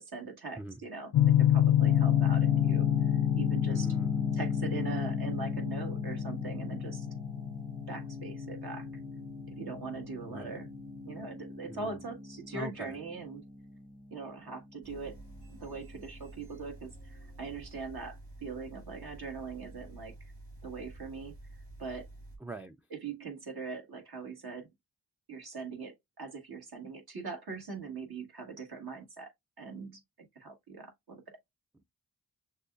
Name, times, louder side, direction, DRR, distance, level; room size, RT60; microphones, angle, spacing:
voice 1, 0.0-3.9 4.3-7.1 7.9-8.9 9.5-10.7 11.1-13.4 14.1-15.2 15.6-20.2 20.6-21.4 21.8-22.1 22.9-24.7 25.3-29.3 29.6-30.0 30.4-31.2, right 4 dB, 65° right, 1.7 m, -41 dB
sound 1, 1.1-9.8, left 12 dB, 80° left, 0.5 m, -28 dB
sound 2, 1.8-16.6, left 1 dB, 20° right, 1.0 m, -40 dB
voice 2, 3.7-4.2 10.3-10.6 11.7-12.0 12.5-13.0 22.4-22.8, right 2 dB, 5° right, 0.4 m, -43 dB
sound 3, 14.8-22.4, right 1 dB, 80° right, 1.8 m, -50 dB
6.4 x 2.4 x 2.4 m
cardioid pair, 45°, 40 cm